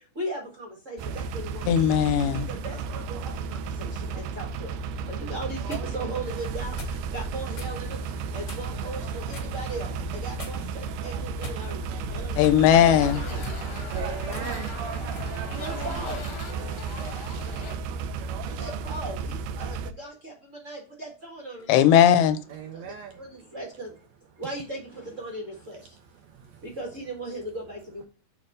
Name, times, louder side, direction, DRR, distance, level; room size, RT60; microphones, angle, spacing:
voice 1, 0.0-1.7 2.3-13.5 15.5-16.2 18.4-21.9 22.7-23.9 24.4-26.0 26.6-28.1, right 1 dB, 35° right, 1.2 m, -38 dB
sound 1, 1.0-19.9, right 4 dB, 90° right, 2.3 m, -33 dB
voice 2, 1.7-2.5 12.4-13.2 21.7-22.4, left 10 dB, 80° left, 2.2 m, -18 dB
sound 2, 5.7-5.9 6.8-7.0 7.5-7.8 8.5-8.8 9.3-9.6 10.4-10.8 11.4-11.9 12.4-12.7 13.3-13.6 14.3-14.5 15.2-15.4, left 4 dB, 30° left, 1.8 m, -41 dB
sound 3, 12.9-17.8, left 4 dB, 50° left, 1.3 m, -41 dB
voice 3, 13.9-14.9 22.5-23.2 26.2-26.7, right 7 dB, 75° right, 1.7 m, -39 dB
6.5 x 3.4 x 5.3 m
omnidirectional pair, 3.8 m